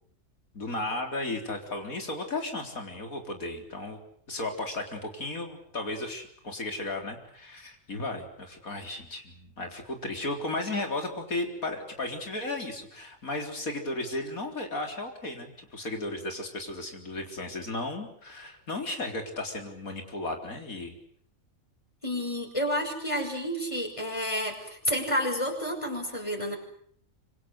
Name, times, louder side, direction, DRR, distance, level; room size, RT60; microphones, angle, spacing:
voice 1, 0.5-4.0 4.3-21.0, left 2 dB, 90° left, 4 dB, 4.4 m, -35 dB
voice 2, 22.0-26.6, equal, 20° left, 3 dB, 6.2 m, -30 dB
26.5 x 25.0 x 8.1 m, 0.62 s
omnidirectional pair, 1.4 m